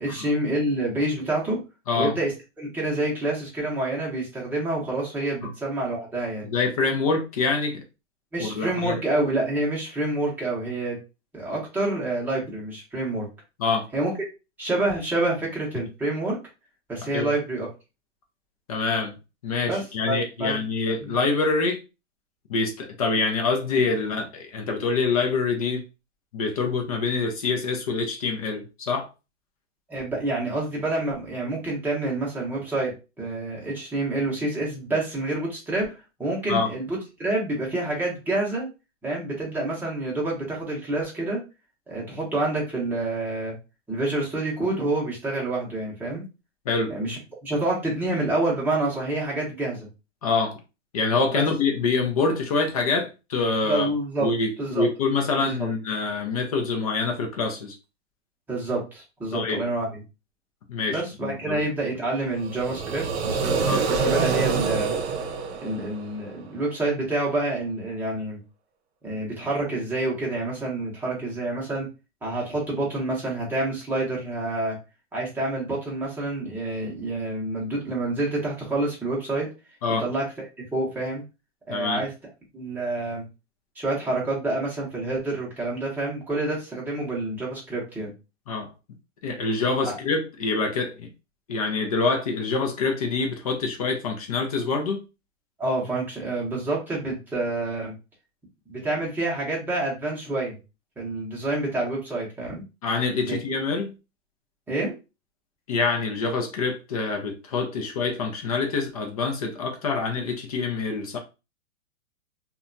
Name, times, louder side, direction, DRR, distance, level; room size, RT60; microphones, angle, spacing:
voice 1, 0.0-1.6 2.0-2.3 2.6-6.5 8.3-11.0 11.3-13.3 13.9-14.1 14.6-16.4 16.9-17.7 19.7-20.5 21.0-21.1 29.9-35.9 36.2-38.7 39.0-41.4 41.9-43.6 43.9-46.2 46.9-49.9 51.3-51.5 53.6-54.3 54.6-54.8 55.4-55.7 58.5-60.0 60.9-64.9 65.6-68.4 69.0-71.9 72.2-74.8 75.1-79.5 80.0-80.2 80.7-81.2 81.7-82.1 82.5-83.2 83.8-88.1 89.8-89.9 95.6-97.9 98.7-100.6 101.0-102.6 103.2-103.4 104.7-104.9, right 2 dB, 5° right, 0.7 m, -28 dB
voice 2, 6.5-7.8 8.4-9.0 13.6-13.9 17.1-17.3 18.7-19.2 19.4-21.8 22.5-25.8 26.3-29.1 36.5-36.7 46.7-46.9 50.2-50.6 50.9-53.9 54.2-57.8 59.3-59.6 60.7-61.6 63.7-63.8 79.8-80.1 81.7-82.0 88.5-88.7 89.2-91.1 91.5-95.0 102.8-103.9 105.7-111.2, left 4 dB, 30° left, 0.4 m, -25 dB
sound 1, 62.4-66.4, right 5 dB, 60° right, 0.7 m, -26 dB
2.7 x 2.2 x 2.5 m
hypercardioid pair, 145°, 36 cm